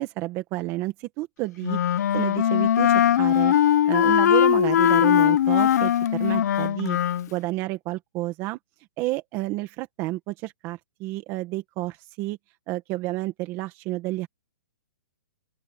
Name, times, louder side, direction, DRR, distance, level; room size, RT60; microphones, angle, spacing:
voice 1, 0.0-1.8 2.1-3.6 3.8-7.0 7.3-8.6 9.0-12.4 12.7-14.3, right 18 dB, 25° right, 1.6 m, -30 dB
Wind instrument woodwind instrument, 1.6-7.3, left 10 dB, 55° left, 0.7 m, -20 dB
open air
hypercardioid pair, 160°, 10 cm